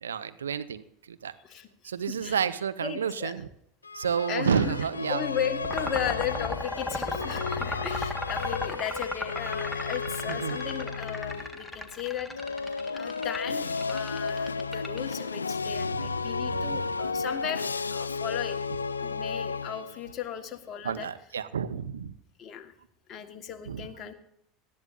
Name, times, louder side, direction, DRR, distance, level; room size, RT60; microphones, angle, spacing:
voice 1, 0.0-1.3 1.8-3.5 3.9-5.2 10.3-10.6 15.7-16.8 17.2-17.3 20.8-22.1 23.7-23.9, right 7 dB, 80° right, 12 dB, 0.7 m, -31 dB
voice 2, 2.8-3.3 4.3-4.8 5.1-12.3 12.9-18.6 19.0-21.1 22.4-22.7 23.1-24.1, left 9 dB, 40° left, 5 dB, 1.6 m, -36 dB
sound 1, 3.8-11.7 12.3-20.2, left 4 dB, 90° left, 0.3 m, -33 dB
sound 2, 5.6-15.4, left 2 dB, 10° left, 1.7 m, -36 dB
18.5 x 13.0 x 2.6 m, 0.73 s
figure-of-eight pair, 80°, 0 cm